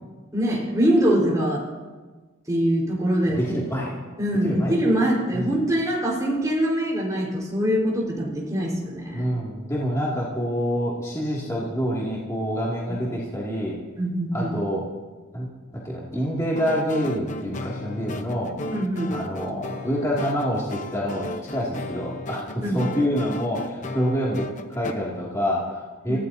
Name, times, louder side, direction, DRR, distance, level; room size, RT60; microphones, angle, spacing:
voice 1, 0.3-1.6 2.5-3.4 4.2-9.2 12.9-13.0 14.0-14.5 18.7-19.1 22.6-22.8 26.1-26.2, equal, 15° right, -3 dB, 4.4 m, -23 dB
voice 2, 3.3-3.9 4.4-4.7 5.3-5.5 9.1-13.8 14.3-14.8 15.3-15.5 15.8-18.5 19.1-24.4 24.7-26.2, equal, 15° left, -6 dB, 2.4 m, -27 dB
sound 1, 16.6-24.9, left 2 dB, 35° left, 0.9 m, -35 dB
28.5 x 16.5 x 2.8 m, 1.3 s
head